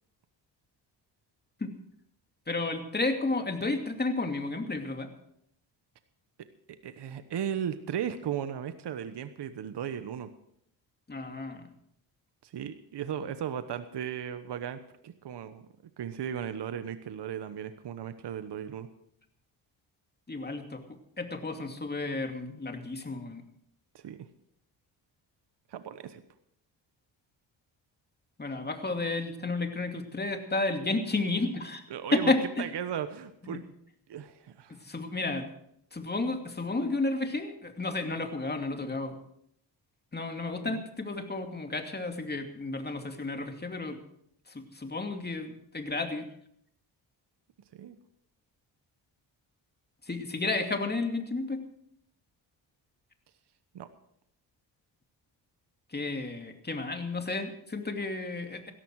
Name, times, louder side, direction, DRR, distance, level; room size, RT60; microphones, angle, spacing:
voice 1, 2.5-5.1 11.1-11.7 20.3-20.8 21.2-23.4 28.4-31.8 32.1-32.6 33.4-33.6 34.7-35.4 35.9-39.2 40.1-44.0 44.5-46.3 50.1-51.6 55.9-58.7, left 3 dB, 20° left, 5 dB, 2.6 m, -32 dB
voice 2, 6.4-10.3 12.4-15.7 16.0-18.9 23.9-24.3 25.7-26.2 31.9-33.6 34.1-34.8 40.6-40.9 47.7-48.0 53.7-53.9, right 9 dB, 60° right, 11 dB, 1.1 m, -36 dB
17.0 x 14.0 x 4.8 m, 0.71 s
cardioid pair, 75°, 46 cm